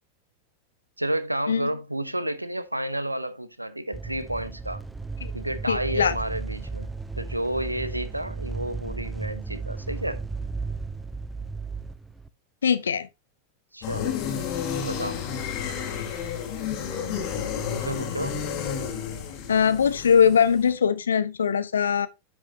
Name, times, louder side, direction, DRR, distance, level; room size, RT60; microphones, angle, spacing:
voice 1, 1.0-4.8 5.3-6.9 7.2-10.2 13.7-14.1 14.8-15.2 17.7-18.4, right 1 dB, 85° right, 0.7 m, -31 dB
sound 1, 3.9-12.3, right 4 dB, 5° right, 0.6 m, -34 dB
voice 2, 5.7-6.1 12.6-13.1 19.5-22.1, left 7 dB, 70° left, 0.7 m, -21 dB
sound 2, 13.8-20.7, left 7 dB, 40° left, 2.0 m, -31 dB
9.9 x 5.5 x 2.9 m
figure-of-eight pair, 90°, 0 cm